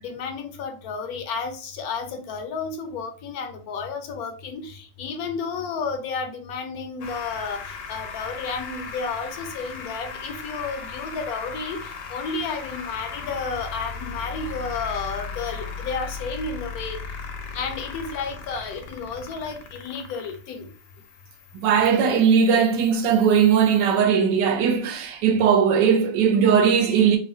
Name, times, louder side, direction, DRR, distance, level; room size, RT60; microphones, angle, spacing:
voice 1, 0.0-11.8 12.1-17.0 17.5-20.7 21.9-22.2, left 5 dB, 70° left, 1.0 m, -32 dB
sound 1, 7.0-24.0, left 5 dB, 85° left, 1.4 m, -37 dB
voice 2, 21.5-27.2, right 7 dB, 80° right, 1.2 m, -19 dB
3.6 x 2.1 x 2.6 m
omnidirectional pair, 1.9 m